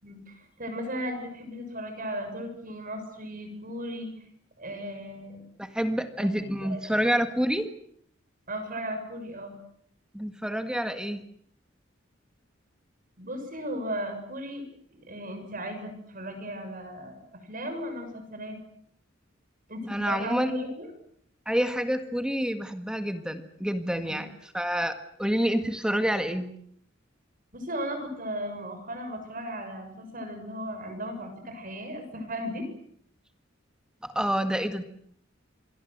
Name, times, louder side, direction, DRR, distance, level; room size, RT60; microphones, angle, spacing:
voice 1, 0.0-4.1 4.6-5.4 6.2-6.3 6.6-7.0 8.5-9.6 13.2-14.6 14.9-18.6 19.7-20.9 24.0-24.2 27.5-32.7, equal, 45° right, 6 dB, 6.9 m, -36 dB
voice 2, 5.6-7.7 10.1-11.2 19.9-20.5 21.5-24.3 24.5-26.5 34.0-34.8, equal, 5° right, 8 dB, 1.8 m, -28 dB
27.5 x 22.5 x 7.8 m, 0.68 s
head